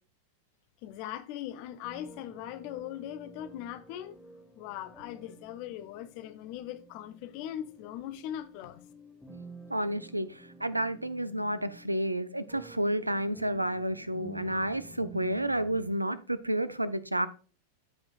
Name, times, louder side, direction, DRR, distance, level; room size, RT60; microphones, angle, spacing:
voice 1, 0.8-4.2 4.5-8.8, left 11 dB, 45° left, 0.9 m, -40 dB
sound 1, 1.8-15.9, equal, 5° left, 1.3 m, -51 dB
voice 2, 9.7-17.3, right 1 dB, 85° right, 0.6 m, -31 dB
14.5 x 5.1 x 2.3 m
figure-of-eight pair, 90°, 0 cm